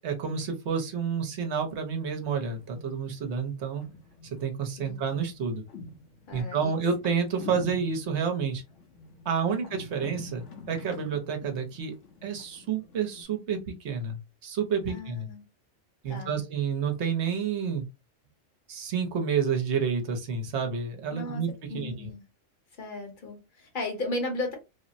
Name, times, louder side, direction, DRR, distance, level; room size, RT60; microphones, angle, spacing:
voice 1, 0.0-3.8 4.4-5.6 6.3-8.6 9.2-11.9 12.2-15.3 16.0-17.9 18.7-22.1, right 6 dB, 65° right, 1.0 m, -29 dB
sound 1, 2.2-13.2, left 3 dB, 75° left, 1.1 m, -46 dB
voice 2, 6.3-6.8 9.4-9.7 14.9-15.4 16.1-16.4 21.1-21.4 21.7-22.2 22.7-24.5, left 2 dB, 45° left, 0.9 m, -35 dB
3.4 x 2.0 x 2.5 m
omnidirectional pair, 1.3 m